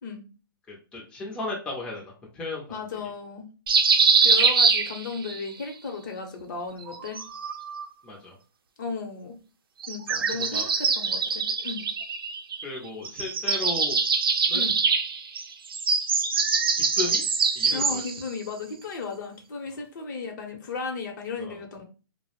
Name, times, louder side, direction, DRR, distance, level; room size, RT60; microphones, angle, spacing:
voice 1, 0.7-2.8 8.0-8.4 10.4-10.6 12.6-14.0 14.5-14.7 16.7-17.3 17.6-18.0 21.4-21.6, left 2 dB, 10° left, -3 dB, 0.5 m, -35 dB
voice 2, 2.7-3.5 4.2-7.2 8.8-9.4 9.9-11.8 14.5-14.7 17.7-21.8, left 4 dB, 55° left, 3 dB, 0.7 m, -35 dB
sound 1, 3.7-5.4 6.8-7.9 9.8-12.8 13.1-18.2, right 5 dB, 80° right, 0.5 m, -24 dB
2.2 x 2.0 x 2.9 m, 0.34 s
hypercardioid pair, 140°, 12 cm